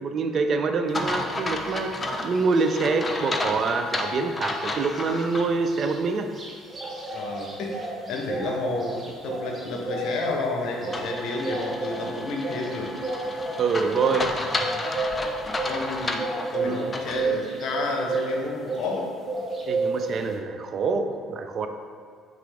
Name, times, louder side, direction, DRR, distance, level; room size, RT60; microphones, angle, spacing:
voice 1, 0.0-6.3 13.6-14.3 16.6-16.9 19.7-21.7, right 4 dB, 50° right, 7 dB, 0.3 m, -26 dB
sound 1, 0.9-5.5 5.9-6.0 10.9-17.3, left 2 dB, 25° left, 0.4 m, -32 dB
sound 2, 1.0-1.3 1.6-3.2 3.6-3.7 4.0-19.0 19.3-20.4, right 3 dB, 30° right, 0.8 m, -32 dB
voice 2, 7.1-12.9 15.6-19.1, left 3 dB, 65° left, 1 dB, 0.6 m, -31 dB
sound 3, 10.2-15.5, right 2 dB, 70° right, 0.8 m, -48 dB
5.6 x 2.4 x 3.4 m, 2.2 s
hypercardioid pair, 55°, 0 cm